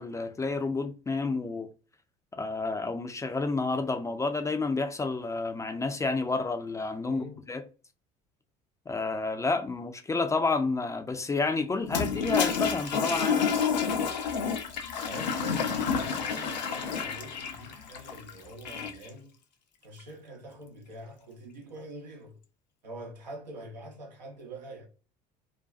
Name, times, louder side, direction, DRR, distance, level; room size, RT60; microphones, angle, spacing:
voice 1, 0.0-1.7 2.3-7.6 8.9-13.5, left 3 dB, 15° left, 0.4 m, -30 dB
voice 2, 7.0-7.5 15.0-19.4 19.8-22.4 22.8-24.9, right 1 dB, 85° right, 0.7 m, -45 dB
Toilet flush, 11.8-19.1, left 6 dB, 85° left, 0.4 m, -29 dB
2.5 x 2.2 x 2.4 m
figure-of-eight pair, 65°, 21 cm